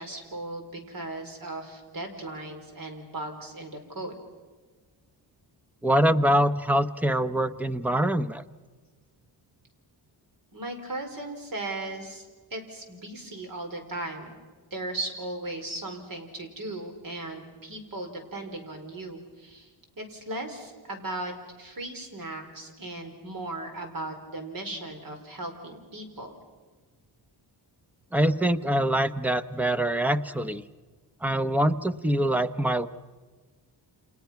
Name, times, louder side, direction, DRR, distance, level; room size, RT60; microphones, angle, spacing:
voice 1, 0.0-4.2 10.5-12.2 12.5-14.3 14.7-19.7 20.0-21.3 21.6-26.3, right 2 dB, 50° right, 4 dB, 4.7 m, -37 dB
voice 2, 5.8-8.4 28.1-30.6 31.2-32.9, right 1 dB, 5° right, 12 dB, 0.7 m, -24 dB
29.5 x 28.5 x 5.9 m, 1.4 s
wide cardioid pair, 165°, 43 cm